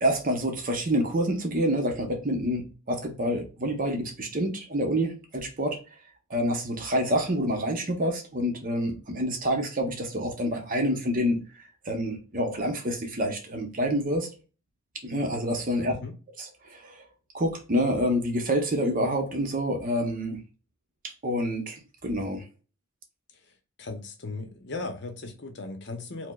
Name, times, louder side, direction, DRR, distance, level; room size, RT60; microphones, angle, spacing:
voice 1, 0.0-5.8 6.3-11.4 11.9-14.3 15.0-15.9 16.4-17.0 17.3-20.4 21.0-22.4, equal, 40° right, 0.7 m, -27 dB
voice 2, 23.8-26.3, left 3 dB, 55° left, 0.7 m, -37 dB
4.8 x 2.1 x 2.3 m
head